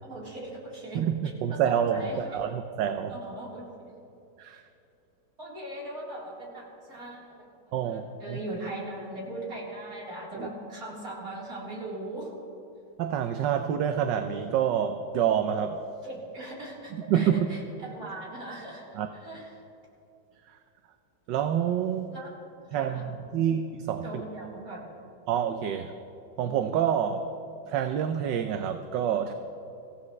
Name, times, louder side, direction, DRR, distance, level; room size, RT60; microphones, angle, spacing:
voice 1, 0.0-1.0 1.5-2.4 3.1-3.7 5.4-12.3 16.0-18.9 19.2-19.5 22.1-22.3 22.7-23.1 24.0-25.0, right 1 dB, 45° right, -6 dB, 4.4 m, -39 dB
voice 2, 0.9-3.2 4.4-4.7 7.7-8.4 10.3-10.5 13.0-15.8 16.9-17.5 18.9-19.1 20.5-20.6 21.3-22.1 22.7-24.2 25.3-25.9 26.4-27.3 27.7-29.3, right 9 dB, 70° right, 7 dB, 1.3 m, -27 dB
26.0 x 16.0 x 3.2 m, 2.7 s
omnidirectional pair, 2.1 m